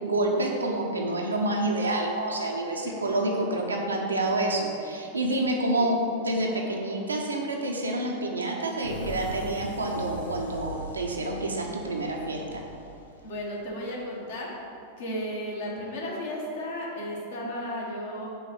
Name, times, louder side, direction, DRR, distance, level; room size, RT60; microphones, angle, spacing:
voice 1, 0.0-12.6, right 1 dB, 75° right, 0 dB, 0.8 m, -28 dB
sound 1, 8.8-14.4, equal, 80° left, 0.8 m, -41 dB
voice 2, 13.2-14.5 15.0-18.3, equal, 55° left, -2 dB, 1.4 m, -34 dB
5.5 x 4.0 x 6.0 m, 2.6 s
figure-of-eight pair, 90°, 0 cm